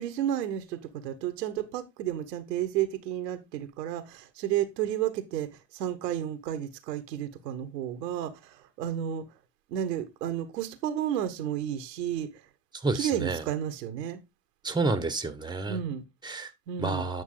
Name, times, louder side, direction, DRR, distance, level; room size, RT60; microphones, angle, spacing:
voice 1, 0.0-9.3 9.7-12.5 12.9-14.2 15.7-16.0 16.7-17.1, right 10 dB, 85° right, 1.4 m, -32 dB
voice 2, 12.7-13.4 14.6-15.8 16.2-16.5 16.8-17.2, right 3 dB, 10° right, 1.5 m, -29 dB
9.2 x 6.1 x 3.9 m
hypercardioid pair, 70°, 48 cm